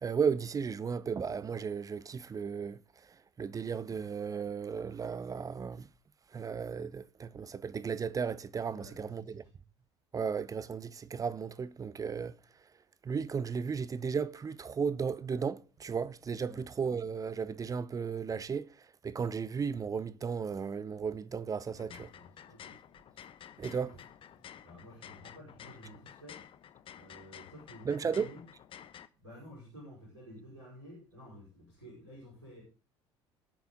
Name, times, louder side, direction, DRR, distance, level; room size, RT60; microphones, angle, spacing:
voice 1, 0.0-5.9 6.3-9.4 10.1-12.4 13.0-22.1 23.6-24.0 27.8-28.3, right 6 dB, 25° right, 0.6 m, -35 dB
voice 2, 8.7-9.4 16.4-16.6 21.7-22.8 23.5-24.0 24.6-26.4 26.9-28.4 29.2-32.6, equal, 80° right, 5.3 m, -52 dB
sound 1, 21.7-29.1, left 9 dB, 35° left, 0.9 m, -52 dB
19.0 x 7.0 x 3.8 m
figure-of-eight pair, 60°, 15 cm